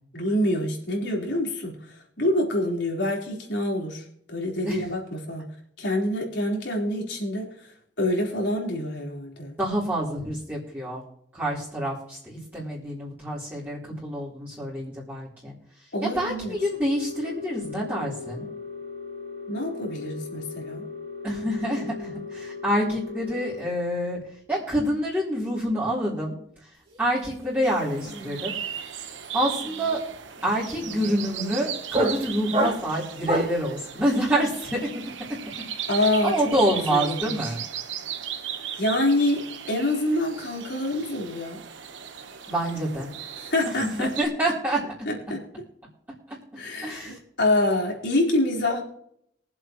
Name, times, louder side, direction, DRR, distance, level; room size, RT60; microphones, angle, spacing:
voice 1, 0.1-4.0 4.3-5.4 5.8-7.5 8.0-9.6 15.9-16.5 19.5-20.9 35.9-36.3 36.9-37.4 38.8-41.6 43.4-44.1 45.1-45.5 46.6-48.8, left 1 dB, 75° left, -2 dB, 4.1 m, -26 dB
voice 2, 9.6-11.0 11.3-15.6 16.0-18.5 21.2-24.2 24.5-26.3 27.0-28.5 29.3-30.0 30.4-34.9 36.2-37.6 42.5-43.1 44.0-44.8 46.3-46.4 46.8-47.2 48.7-48.8, equal, 10° right, -9 dB, 3.6 m, -27 dB
sound 1, 16.5-23.6, left 5 dB, 65° right, 1.0 m, -38 dB
sound 2, 26.9-27.2 27.4-33.7, right 1 dB, 30° right, 2.7 m, -30 dB
sound 3, 27.6-44.3, right 9 dB, 90° right, 1.1 m, -37 dB
23.5 x 7.9 x 3.0 m, 0.69 s
head